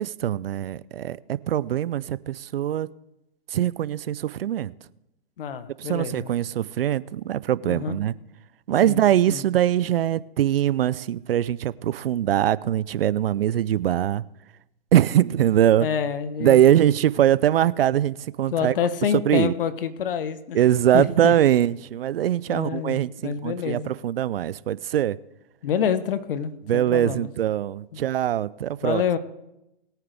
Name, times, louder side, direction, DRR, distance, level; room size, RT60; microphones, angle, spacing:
voice 1, 0.0-2.9 3.5-4.7 5.8-8.1 8.7-14.2 14.9-15.9 16.4-18.7 19.1-19.5 20.5-25.2 26.7-29.0, right 11 dB, 70° right, 0.6 m, -22 dB
voice 2, 5.4-6.3 7.6-8.0 8.8-9.0 9.3-9.4 15.8-16.6 18.5-20.6 20.9-21.3 22.5-23.9 25.6-27.3 27.9-28.0 28.8-29.2, left 8 dB, 60° left, 1.2 m, -27 dB
21.0 x 9.4 x 3.5 m
hypercardioid pair, 125°, 30 cm